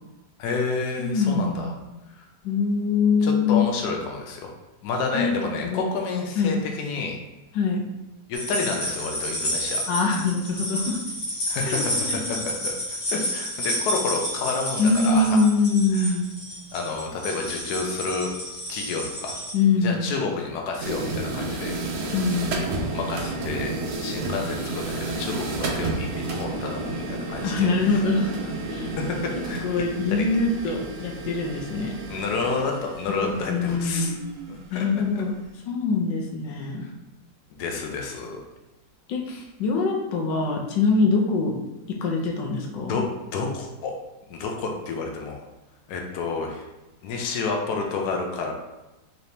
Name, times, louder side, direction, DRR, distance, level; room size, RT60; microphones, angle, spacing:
voice 1, 0.4-1.7 2.1-2.2 3.2-4.4 4.8-7.2 8.3-9.8 11.5-12.7 13.1-15.4 15.9-16.1 16.7-18.3 18.7-19.4 19.8-21.8 22.9-28.0 28.8-29.7 30.1-30.3 32.1-34.1 34.5-35.2 36.8-36.9 37.6-38.4 39.3-39.4 42.9-43.1 43.3-43.9 44.3-45.4 45.9-46.7 47.0-48.5, left 4 dB, 70° left, 1 dB, 1.2 m, -30 dB
voice 2, 1.0-1.7 2.4-3.7 5.1-5.3 5.6-5.8 6.4-6.6 7.5-7.8 9.9-11.0 11.6-12.2 14.8-16.3 19.5-20.1 22.1-22.7 27.4-28.4 28.7-28.9 29.6-31.9 33.1-34.2 34.7-35.4 35.7-36.8 39.1-39.2 39.6-41.6 41.9-43.0, left 4 dB, 85° left, 0 dB, 1.4 m, -23 dB
sound 1, 8.3-19.5, equal, 40° left, 1.5 m, -30 dB
sound 2, 20.8-35.1, right 2 dB, 90° right, 0.5 m, -31 dB
4.1 x 3.2 x 2.8 m, 1.0 s
omnidirectional pair, 1.9 m